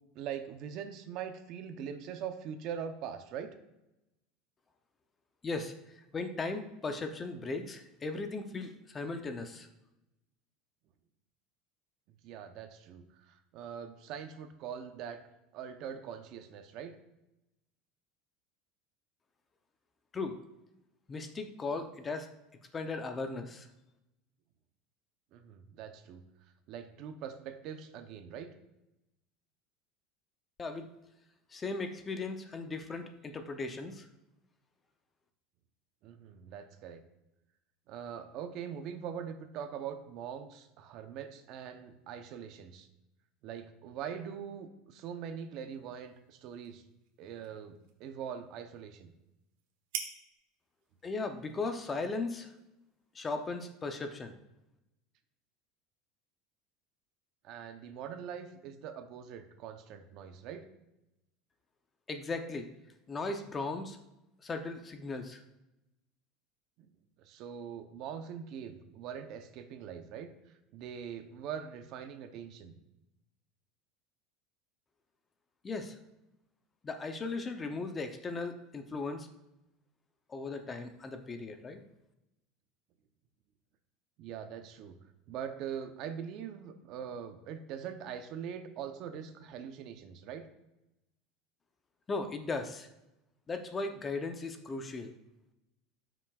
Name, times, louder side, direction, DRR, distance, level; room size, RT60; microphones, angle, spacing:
voice 1, 0.1-3.5 12.2-15.2 15.5-17.0 25.3-26.2 26.7-28.5 36.0-37.0 37.9-42.9 43.4-46.8 47.2-49.1 57.4-60.7 66.8-66.9 67.2-70.3 70.7-72.7 84.2-85.0 85.3-90.5, right 8 dB, 50° right, 8 dB, 0.7 m, -42 dB
voice 2, 5.4-5.7 6.1-9.7 20.1-20.4 21.1-22.3 22.7-23.7 30.6-30.9 31.5-34.1 51.0-52.5 53.1-54.3 62.1-62.7 63.1-64.0 64.4-65.4 75.6-76.0 76.8-79.3 80.3-81.8 92.1-92.9 93.5-95.1, left 3 dB, 20° left, 7 dB, 0.6 m, -37 dB
sound 1, 45.6-53.3, right 8 dB, 75° right, 1.2 m, -49 dB
12.5 x 6.0 x 2.4 m, 0.92 s
cardioid pair, 160°, 0 cm